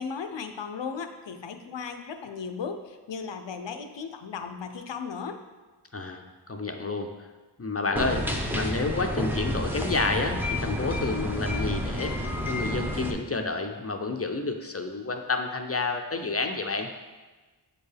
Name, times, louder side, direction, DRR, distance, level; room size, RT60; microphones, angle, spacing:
voice 1, 0.0-5.4, left 5 dB, 75° left, 7 dB, 0.6 m, -36 dB
voice 2, 5.9-7.1 7.6-8.3 8.5-16.9, left 3 dB, 35° left, 5 dB, 0.5 m, -30 dB
sound 1, 8.0-13.1, left 1 dB, 5° right, 0.7 m, -30 dB
7.5 x 4.4 x 3.4 m, 1.3 s
wide cardioid pair, 60°, 44 cm